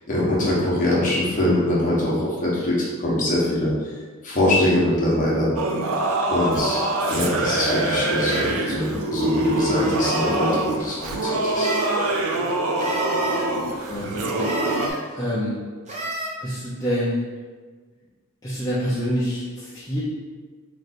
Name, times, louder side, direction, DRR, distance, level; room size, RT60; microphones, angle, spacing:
voice 1, 0.1-3.7 4.2-5.5 6.3-6.8 7.1-11.7, left 1 dB, 35° left, -6 dB, 1.0 m, -23 dB
Singing / Musical instrument, 5.6-14.9, right 2 dB, 75° right, 0.4 m, -24 dB
sound 1, 6.7-6.9 7.6-8.6 9.6-10.4 11.5-12.0 12.8-13.5 14.4-15.0 15.9-16.3, right 1 dB, 30° right, 0.6 m, -32 dB
voice 2, 13.9-14.5 15.1-15.6 16.4-17.3 18.4-20.0, equal, 15° left, -10 dB, 0.6 m, -26 dB
3.2 x 2.6 x 4.1 m, 1.4 s
head